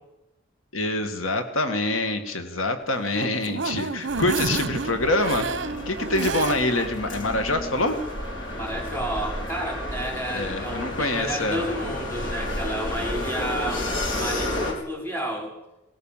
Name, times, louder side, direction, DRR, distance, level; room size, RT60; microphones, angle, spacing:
voice 1, 0.7-5.5 5.9-8.0 10.3-11.7, left 2 dB, 85° left, 7 dB, 2.0 m, -25 dB
sound 1, 2.9-6.9 7.3-7.4 7.7-7.8, right 4 dB, 60° right, 0.9 m, -30 dB
sound 2, 4.1-14.7, left 1 dB, 70° left, 4.7 m, -31 dB
voice 2, 8.5-15.5, right 1 dB, 10° left, -2 dB, 5.2 m, -31 dB
19.5 x 19.0 x 7.5 m, 0.97 s
head